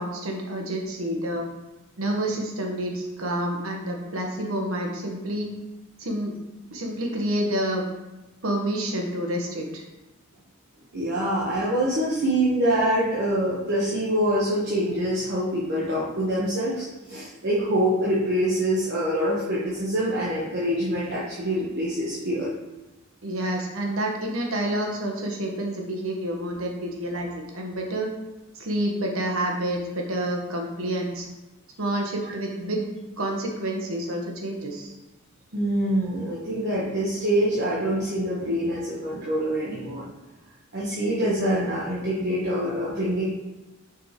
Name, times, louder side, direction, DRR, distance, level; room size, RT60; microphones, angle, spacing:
voice 1, 0.0-1.4 2.0-5.5 6.0-6.3 6.7-7.8 8.4-9.8 23.2-28.1 28.6-31.3 31.8-32.8 33.2-34.9, right 1 dB, 80° right, 1 dB, 1.2 m, -28 dB
voice 2, 10.9-22.5 35.5-40.1 40.7-43.2, right 1 dB, 55° right, -7 dB, 1.1 m, -25 dB
6.2 x 5.2 x 3.0 m, 1.0 s
head